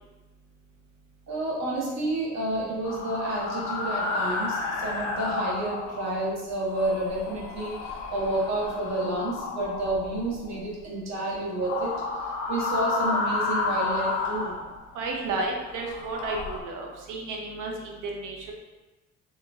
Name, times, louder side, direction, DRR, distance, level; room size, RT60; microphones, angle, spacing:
voice 1, 1.3-7.8 8.1-11.9 12.5-14.5, right 1 dB, 60° right, -4 dB, 1.4 m, -30 dB
sound 1, 2.8-6.3 6.6-10.6 11.5-15.1 15.6-16.6, left 3 dB, 75° left, 0.7 m, -31 dB
voice 2, 14.9-18.5, right 3 dB, 85° right, 0 dB, 0.7 m, -32 dB
4.3 x 3.1 x 2.4 m, 1.1 s
cardioid pair, 90°, 30 cm